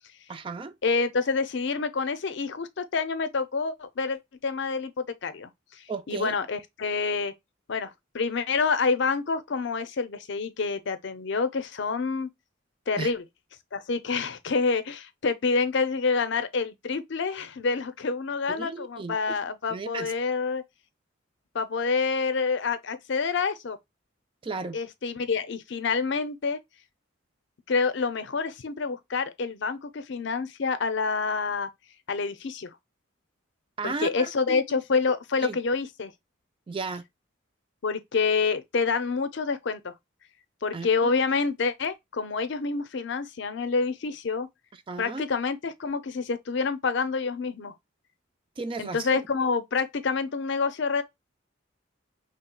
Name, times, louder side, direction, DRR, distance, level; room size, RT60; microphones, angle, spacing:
voice 1, 0.3-0.7 5.9-6.3 13.0-13.1 18.5-19.2 19.7-20.1 24.4-24.8 33.8-34.6 35.4-35.6 36.7-37.1 40.7-41.1 44.9-45.2 48.6-49.2, right 3 dB, 25° right, 0.3 m, -34 dB
voice 2, 0.8-7.3 7.7-12.3 12.9-13.2 13.7-20.6 21.5-23.8 24.7-26.6 27.7-31.7 32.1-32.7 33.8-36.1 37.8-39.9 40.6-44.5 45.0-47.7 48.8-51.0, left 4 dB, 60° left, 0.5 m, -27 dB
4.3 x 3.1 x 2.2 m
head